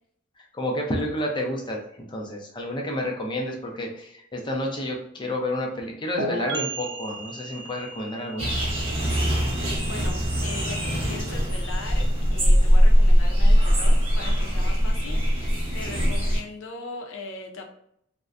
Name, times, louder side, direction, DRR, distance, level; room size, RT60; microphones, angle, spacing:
voice 1, 0.5-1.8 2.1-8.5 15.8-16.1, left 1 dB, 25° left, 0 dB, 0.5 m, -30 dB
sound 1, 6.2-13.7, right 2 dB, 65° right, 0.4 m, -37 dB
sound 2, 8.4-16.4, equal, 30° right, 0.8 m, -21 dB
voice 2, 8.9-17.7, left 3 dB, 85° left, 2 dB, 0.5 m, -39 dB
2.5 x 2.1 x 2.4 m, 0.70 s
head